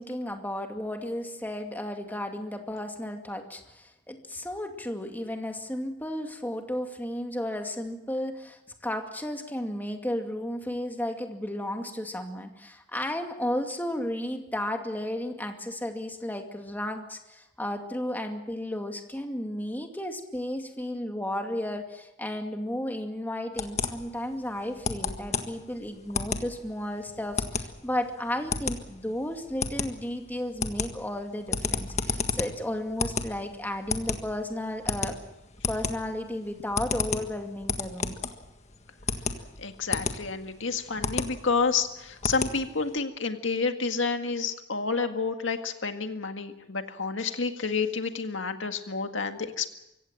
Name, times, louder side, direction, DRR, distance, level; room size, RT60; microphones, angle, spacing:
voice 1, 0.0-35.2 35.7-38.2, left 1 dB, 10° left, 4 dB, 2.3 m, -33 dB
sound 1, 23.6-43.0, left 4 dB, 35° left, 1.6 m, -32 dB
voice 2, 39.6-49.7, left 4 dB, 80° left, 6 dB, 1.9 m, -29 dB
24.5 x 16.0 x 7.6 m, 0.89 s
head